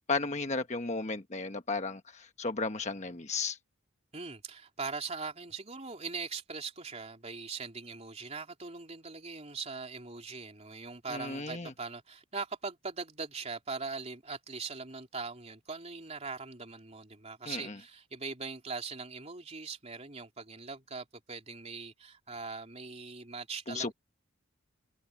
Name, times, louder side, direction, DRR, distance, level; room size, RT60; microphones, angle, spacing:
voice 1, 0.1-3.6 11.1-11.7 17.4-17.8 23.7-23.9, left 3 dB, 35° left, 1.2 m, -34 dB
voice 2, 4.1-23.9, right 4 dB, 30° right, 3.5 m, -41 dB
head